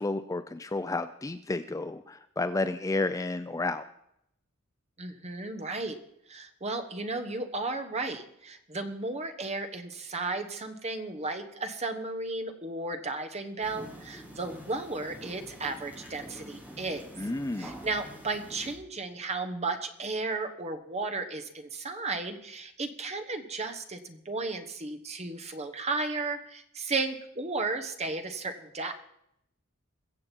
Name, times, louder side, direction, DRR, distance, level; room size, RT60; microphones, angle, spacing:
voice 1, 0.0-3.8 17.2-17.8, left 2 dB, 15° left, 11 dB, 0.4 m, -31 dB
voice 2, 5.0-6.0 6.3-17.1 17.6-28.9, right 3 dB, 30° right, 6 dB, 1.1 m, -34 dB
sound 1, 13.6-18.7, equal, 5° right, 2.2 m, -46 dB
22.0 x 7.5 x 4.5 m, 0.76 s
head